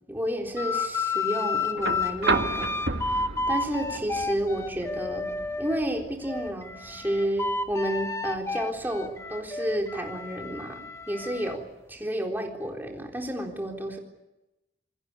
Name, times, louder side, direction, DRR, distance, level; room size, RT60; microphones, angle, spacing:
voice 1, 0.1-2.7 3.5-5.3 5.6-11.6 11.9-14.0, right 1 dB, 10° right, 1 dB, 3.9 m, -31 dB
sound 1, 0.6-5.8 6.2-11.5, left 4 dB, 15° left, 1.3 m, -31 dB
sound 2, 1.8-9.8 11.2-11.3, right 3 dB, 75° right, 1.6 m, -34 dB
28.0 x 21.5 x 8.4 m, 0.97 s
head